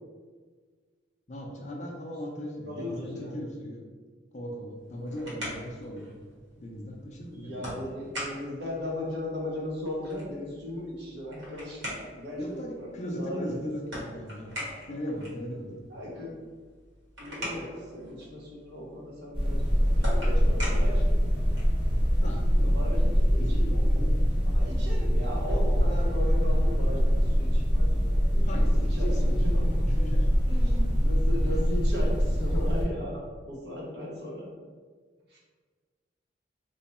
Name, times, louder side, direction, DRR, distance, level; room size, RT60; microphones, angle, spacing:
voice 1, 1.3-3.8 4.3-6.2 6.6-7.9 12.4-14.5 14.9-15.9 22.2-24.3 28.5-29.4 29.6-30.3, equal, 40° left, 0 dB, 0.5 m, -38 dB
voice 2, 2.6-3.4 7.3-11.9 12.1-13.7 15.9-16.4 17.2-21.5 22.6-24.1 24.5-28.5 28.8-29.8 30.5-34.5 35.3-35.4, left 1 dB, 60° right, -4 dB, 1.0 m, -37 dB
sound 1, 4.7-21.8, equal, 75° right, 1.4 m, -43 dB
sound 2, 19.3-32.9, equal, 25° right, 0.8 m, -24 dB
3.0 x 2.2 x 4.1 m, 1.5 s
head